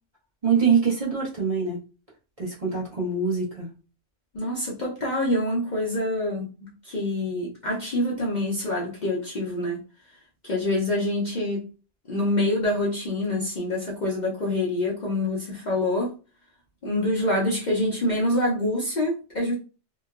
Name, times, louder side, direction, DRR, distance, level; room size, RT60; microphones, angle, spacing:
voice 1, 0.4-1.8 2.4-3.7, right 6 dB, 35° right, -6 dB, 0.8 m, -24 dB
voice 2, 4.3-6.5 6.8-9.8 10.4-11.6 12.1-16.1 16.8-19.5, left 1 dB, 45° left, -5 dB, 0.6 m, -26 dB
2.9 x 2.0 x 2.3 m, 0.34 s
omnidirectional pair, 1.3 m